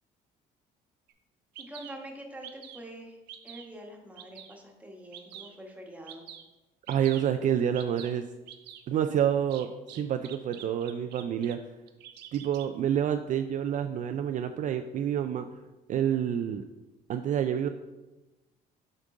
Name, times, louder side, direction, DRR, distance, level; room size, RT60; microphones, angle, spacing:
Bird vocalization bird call bird song, 1.1-1.2 1.5-1.9 2.4-2.9 3.3-3.7 4.2-4.6 5.1-5.5 6.1-6.4 6.9-7.2 7.7-8.1 8.5-8.8 9.5-11.5 11.9-12.7, right 10 dB, 80° right, 0.7 m, -46 dB
voice 1, 1.6-3.2 3.4-6.2, right 1 dB, 10° right, 1 dB, 1.3 m, -45 dB
voice 2, 6.9-8.2 8.9-11.6 12.3-15.5 15.9-16.6 17.1-17.7, right 9 dB, 50° right, 7 dB, 0.4 m, -28 dB
7.2 x 5.3 x 3.7 m, 1.1 s
cardioid pair, 110°, 17 cm